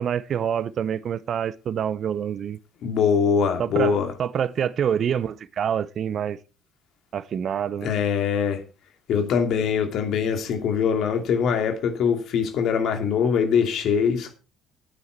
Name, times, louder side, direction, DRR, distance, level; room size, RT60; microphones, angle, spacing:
voice 1, 0.0-2.6 3.6-6.4 7.1-7.9, right 8 dB, 45° right, 0.7 m, -26 dB
voice 2, 2.8-4.1 7.8-8.6 9.1-14.3, left 6 dB, 55° left, 2.4 m, -23 dB
11.5 x 9.4 x 4.5 m
figure-of-eight pair, 55°, 0 cm